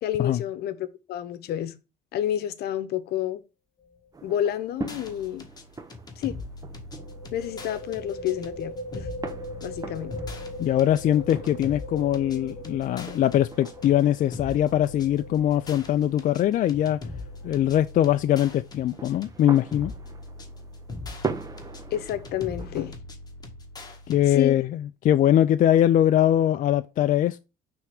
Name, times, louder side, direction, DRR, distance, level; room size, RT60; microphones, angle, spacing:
voice 1, 0.0-1.8 2.1-3.4 4.2-5.5 6.2-6.3 7.3-9.1 9.6-10.1 21.9-22.9 24.3-24.5, left 11 dB, 70° left, 0.9 m, -29 dB
sound 1, 3.8-4.1 4.3-4.4 6.9-18.3, left 1 dB, 5° left, 1.7 m, -41 dB
sound 2, 4.1-23.0, right 4 dB, 20° right, 0.7 m, -42 dB
sound 3, 4.8-24.2, left 2 dB, 25° left, 1.6 m, -41 dB
voice 2, 10.6-17.0 17.4-19.9 24.1-27.4, left 11 dB, 50° left, 0.4 m, -22 dB
5.7 x 3.5 x 4.7 m
cardioid pair, 110°, 17 cm